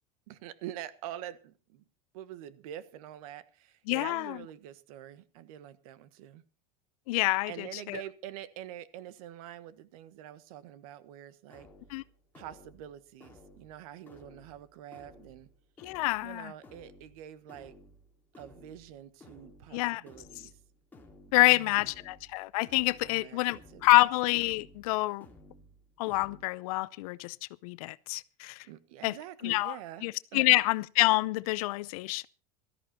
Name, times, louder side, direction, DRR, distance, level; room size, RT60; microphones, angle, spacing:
voice 1, 0.3-1.8 2.1-6.4 7.5-11.7 12.3-15.5 16.2-17.7 18.4-20.5 21.3-21.9 23.0-24.0 28.6-30.4, right 12 dB, 80° right, 1.5 m, -46 dB
voice 2, 3.9-4.4 7.1-8.0 11.9-12.0 15.8-16.5 19.7-20.0 21.3-25.3 26.0-27.4 27.6-28.6 29.0-29.2 29.4-29.8 30.0-32.3, left 21 dB, 75° left, 0.6 m, -27 dB
sound 1, 11.5-26.4, left 1 dB, 10° left, 3.2 m, -56 dB
17.0 x 13.5 x 4.3 m
supercardioid pair, 155°, 18 cm